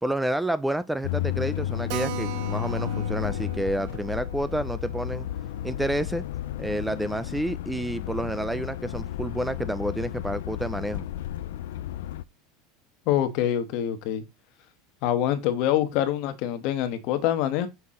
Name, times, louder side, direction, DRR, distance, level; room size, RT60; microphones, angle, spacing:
voice 1, 0.0-5.3 5.6-6.2 6.6-11.1, right 1 dB, 5° right, 0.3 m, -29 dB
sound 1, 1.0-12.2, left 12 dB, 90° left, 0.4 m, -32 dB
Keyboard (musical), 1.9-7.0 7.2-7.3 7.6-7.7 8.0-8.1 8.6-9.0, right 18 dB, 60° right, 0.9 m, -41 dB
voice 2, 13.1-14.2 15.0-17.7, left 11 dB, 55° left, 1.3 m, -25 dB
5.8 x 5.8 x 3.7 m
supercardioid pair, 150°, 0 cm